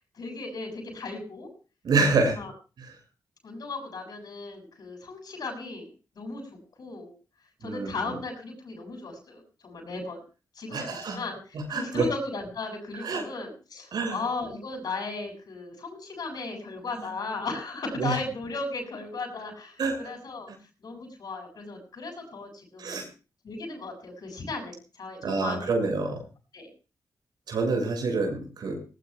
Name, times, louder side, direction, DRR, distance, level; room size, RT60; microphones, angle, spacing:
voice 1, 0.1-1.5 2.1-2.5 3.4-5.9 6.2-6.4 6.8-7.1 7.6-10.2 10.5-20.5 20.8-23.0 23.4-25.7 26.5-26.7, left 3 dB, 70° left, 2 dB, 7.8 m, -36 dB
voice 2, 1.8-2.4 7.6-7.9 10.7-11.2 11.7-12.1 13.0-13.2 13.9-14.2 18.0-18.1 19.8-20.0 22.8-23.0 25.2-26.2 27.5-28.8, right 4 dB, 85° right, 1 dB, 6.8 m, -26 dB
20.5 x 19.5 x 2.4 m, 0.35 s
cardioid pair, 85°, 7 cm